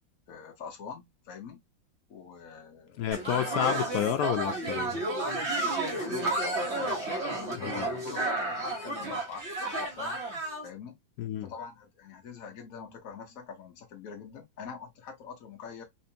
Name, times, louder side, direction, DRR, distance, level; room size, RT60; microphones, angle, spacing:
voice 1, 0.3-1.6 2.1-3.1 5.8-10.2 10.6-11.0 11.4-15.8, left 6 dB, 50° left, 1.2 m, -44 dB
voice 2, 3.0-5.0 7.8-7.9 11.2-11.5, left 10 dB, 80° left, 0.8 m, -30 dB
sound 1, 3.1-10.6, right 2 dB, 40° right, 1.2 m, -32 dB
4.4 x 2.5 x 2.7 m
omnidirectional pair, 2.2 m